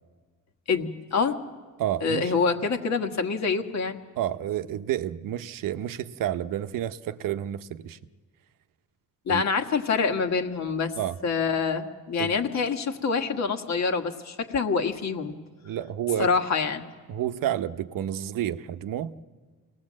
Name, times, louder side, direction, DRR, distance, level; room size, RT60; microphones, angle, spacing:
voice 1, 0.7-1.4 2.0-4.0 9.2-10.9 11.2-15.4 16.2-16.8, left 5 dB, 55° left, 1.7 m, -26 dB
voice 2, 1.8-2.3 4.2-8.0 9.3-9.4 11.0-11.2 12.2-12.4 15.6-16.3 17.1-19.1, right 11 dB, 75° right, 0.8 m, -30 dB
27.0 x 19.0 x 7.6 m
cardioid pair, 120°, 33 cm